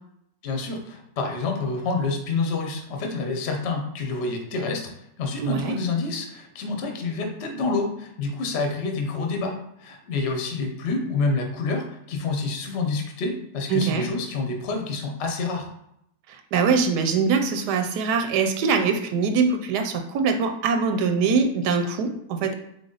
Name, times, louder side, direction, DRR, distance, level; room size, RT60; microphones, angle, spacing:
voice 1, 0.4-15.7, left 3 dB, 50° left, 3 dB, 0.9 m, -28 dB
voice 2, 5.4-5.8 13.7-14.1 16.3-22.5, right 5 dB, 85° right, 6 dB, 1.2 m, -23 dB
4.0 x 3.3 x 3.8 m, 0.77 s
omnidirectional pair, 1.7 m